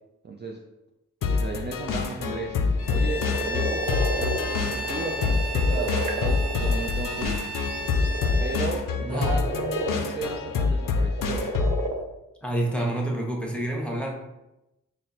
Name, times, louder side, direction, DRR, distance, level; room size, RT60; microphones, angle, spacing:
voice 1, 0.2-0.6 1.3-2.6 2.9-7.4 8.4-9.5 9.8-11.5, right 4 dB, 35° right, 1 dB, 0.4 m, -35 dB
sound 1, 1.2-11.9, left 4 dB, 80° left, 0.5 m, -26 dB
sound 2, 2.2-2.4 2.8-7.4 7.7-12.0, right 2 dB, 85° right, 0.6 m, -32 dB
Bowed string instrument, 2.8-8.7, right 1 dB, 45° left, 0.7 m, -34 dB
voice 2, 9.0-9.4 12.4-14.1, right 1 dB, 5° left, -1 dB, 1.0 m, -28 dB
4.1 x 2.1 x 3.8 m, 0.94 s
cardioid pair, 45°, 32 cm